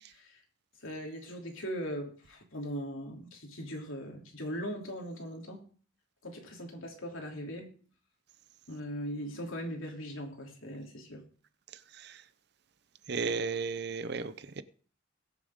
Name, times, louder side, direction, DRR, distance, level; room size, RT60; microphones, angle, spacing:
voice 1, 0.1-0.4 0.8-5.6 6.2-7.7 8.7-11.2, equal, 75° left, 3.0 m, -40 dB
voice 2, 13.1-14.6, right 4 dB, 50° right, 0.6 m, -34 dB
21.0 x 7.2 x 3.6 m
head